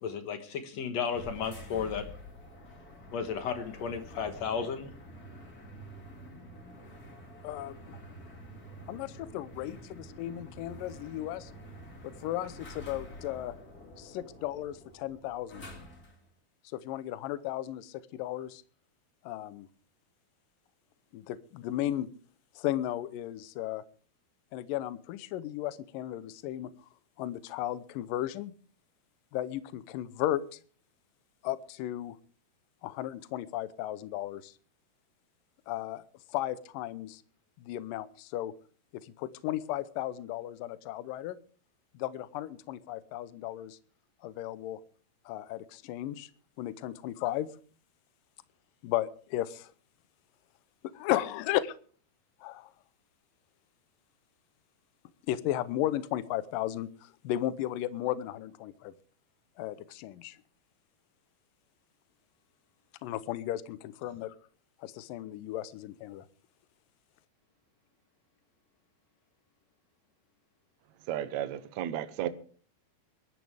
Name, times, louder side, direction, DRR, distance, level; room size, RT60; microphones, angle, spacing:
voice 1, 0.0-2.1 3.1-4.9, left 6 dB, 65° left, 7 dB, 1.8 m, -34 dB
sound 1, 1.1-16.3, equal, 30° left, 1.9 m, -48 dB
voice 2, 7.4-8.0 8.9-11.5 12.2-13.5 14.0-15.7 16.7-18.6 19.2-19.7 21.1-22.1 22.6-23.8 24.5-26.7 27.2-28.5 29.3-30.6 31.4-32.2 32.8-34.5 35.7-36.0 36.3-37.2 37.6-38.5 38.9-41.4 41.9-43.8 44.2-44.8 45.3-46.3 46.6-47.5 48.8-49.7 50.8-51.8 52.4-52.7 55.3-58.9 59.6-60.4 63.0-64.4 64.8-66.3, left 13 dB, 80° left, 15 dB, 2.0 m, -35 dB
voice 3, 71.1-72.3, right 11 dB, 85° right, 10 dB, 1.6 m, -33 dB
22.5 x 12.5 x 3.4 m, 0.43 s
omnidirectional pair, 4.8 m